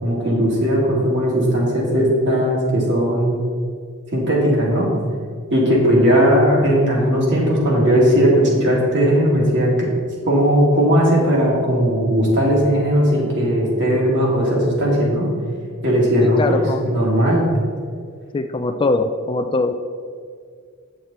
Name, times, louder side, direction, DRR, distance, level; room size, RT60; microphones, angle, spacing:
voice 1, 0.0-3.4 4.1-4.9 5.5-9.9 10.3-15.3 15.8-16.4 16.8-17.4, equal, 55° right, -4 dB, 2.4 m, -17 dB
voice 2, 16.2-16.8 18.3-19.7, left 3 dB, 20° left, 7 dB, 0.3 m, -21 dB
9.3 x 6.6 x 4.2 m, 2.1 s
head